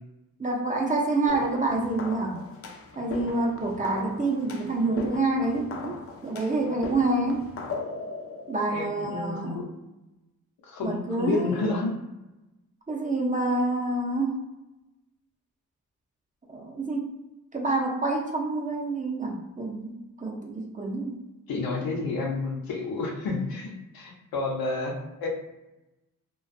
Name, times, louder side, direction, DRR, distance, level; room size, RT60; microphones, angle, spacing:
voice 1, 0.4-2.4 3.0-5.9 6.2-7.5 8.5-9.6 10.8-11.7 12.9-14.4 16.5-17.1 17.5-21.2, right 2 dB, 25° right, -1 dB, 0.5 m, -27 dB
sound 1, 1.3-9.4, left 4 dB, 40° left, 0.4 m, -39 dB
voice 2, 8.7-9.7 10.6-12.0 21.5-25.3, left 3 dB, 90° left, -1 dB, 0.7 m, -30 dB
2.4 x 2.3 x 2.5 m, 1.0 s
cardioid pair, 75°, 35 cm